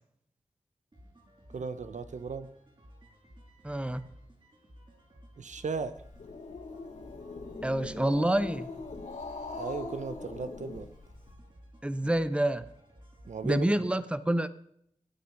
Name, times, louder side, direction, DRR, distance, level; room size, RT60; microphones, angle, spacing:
sound 1, 0.9-13.9, equal, 40° right, 5.2 m, -55 dB
voice 1, 1.5-2.5 5.4-6.0 9.5-10.9 13.3-13.9, right 5 dB, 75° right, 0.7 m, -36 dB
voice 2, 3.6-4.0 7.6-8.7 11.8-12.6 13.4-14.5, right 1 dB, 10° right, 0.8 m, -27 dB
Growling, 6.0-11.3, left 3 dB, 85° left, 2.7 m, -41 dB
15.5 x 8.6 x 6.0 m
cardioid pair, 40°, 13 cm